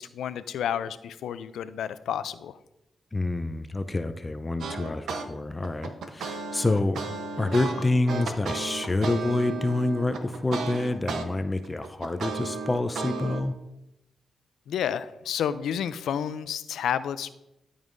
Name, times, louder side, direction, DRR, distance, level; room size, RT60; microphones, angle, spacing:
voice 1, 0.0-2.6 14.7-17.3, left 9 dB, 90° left, 14 dB, 0.4 m, -30 dB
voice 2, 3.1-7.1 7.4-13.5, left 2 dB, 25° left, 10 dB, 0.5 m, -27 dB
sound 1, 4.6-5.3 5.6-11.3 11.6-13.4, right 4 dB, 85° right, 0.8 m, -34 dB
12.5 x 5.4 x 2.6 m, 0.88 s
cardioid pair, 65°, 0 cm